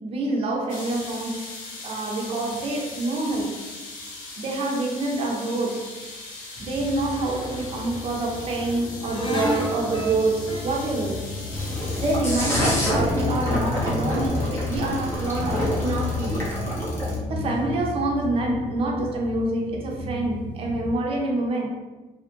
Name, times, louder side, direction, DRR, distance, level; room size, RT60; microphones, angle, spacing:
voice 1, 0.0-1.5 1.8-3.6 4.4-6.0 6.6-11.3 12.0-16.6 17.3-21.7, right 2 dB, 45° right, 0 dB, 0.5 m, -27 dB
sound 1, 0.7-12.2, left 2 dB, 70° left, 0.7 m, -40 dB
sound 2, 6.6-20.9, left 3 dB, 35° left, 0.5 m, -32 dB
sound 3, 11.5-17.1, equal, 15° left, 0.9 m, -27 dB
2.4 x 2.1 x 2.9 m, 1.2 s
cardioid pair, 105°, 14 cm